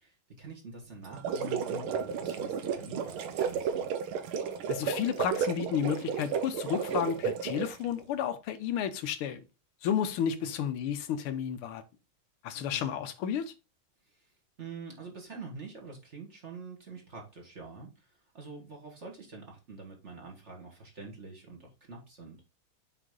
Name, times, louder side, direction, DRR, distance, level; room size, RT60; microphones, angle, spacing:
voice 1, 0.0-3.9 10.4-10.6 12.5-12.9 14.1-14.3 14.6-22.4, right 3 dB, 35° right, 1.8 m, -46 dB
sound 1, 1.0-7.8, right 6 dB, 80° right, 1.6 m, -33 dB
voice 2, 4.7-9.4 9.8-11.8 12.4-13.5, left 8 dB, 85° left, 1.7 m, -32 dB
6.7 x 4.5 x 3.8 m
omnidirectional pair, 2.3 m